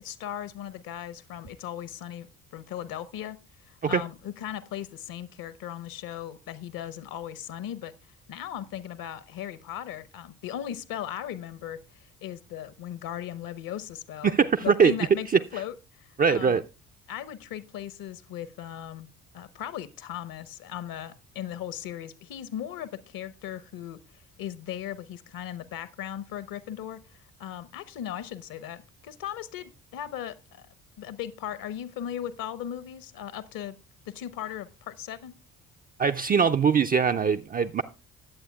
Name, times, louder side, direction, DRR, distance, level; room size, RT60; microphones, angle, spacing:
voice 1, 0.0-2.3 2.5-3.4 3.6-7.9 8.3-16.6 17.1-19.1 19.3-30.7 31.0-33.8 34.1-35.4, left 10 dB, 50° left, 0.9 m, -38 dB
voice 2, 14.2-14.9 16.2-16.6 36.0-37.8, right 6 dB, 20° right, 0.4 m, -22 dB
19.5 x 8.2 x 2.3 m
figure-of-eight pair, 45°, 45 cm